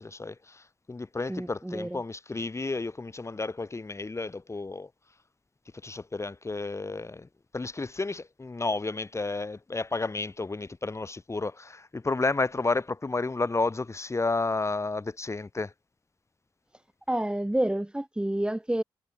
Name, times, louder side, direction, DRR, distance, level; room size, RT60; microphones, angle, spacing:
voice 1, 0.0-4.9 5.8-7.3 7.5-15.7, left 3 dB, 30° left, 5.9 m, -31 dB
voice 2, 1.3-2.0 17.1-18.8, right 1 dB, 10° right, 2.8 m, -29 dB
cardioid pair, 70°, 9 cm